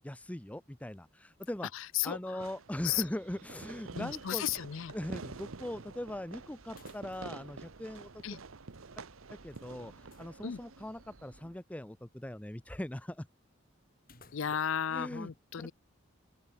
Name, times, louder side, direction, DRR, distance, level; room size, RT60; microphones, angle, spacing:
voice 1, 0.0-1.7 2.0-4.4 4.9-8.1 9.3-13.3 14.4-14.5 14.9-15.3, left 1 dB, 5° left, 0.5 m, -40 dB
sound 1, 1.4-2.3 2.6-2.7 6.7-7.5 7.8-7.9 9.5-10.3 14.0-14.8, left 4 dB, 45° left, 7.6 m, -62 dB
voice 2, 1.7-2.5 2.8-3.0 3.9-4.9 8.2-8.4 10.4-10.6 14.3-15.7, left 9 dB, 70° left, 0.5 m, -34 dB
Fireworks, 2.4-11.4, right 4 dB, 80° right, 0.9 m, -48 dB
sound 2, 3.5-11.6, right 1 dB, 60° right, 2.4 m, -61 dB
open air
head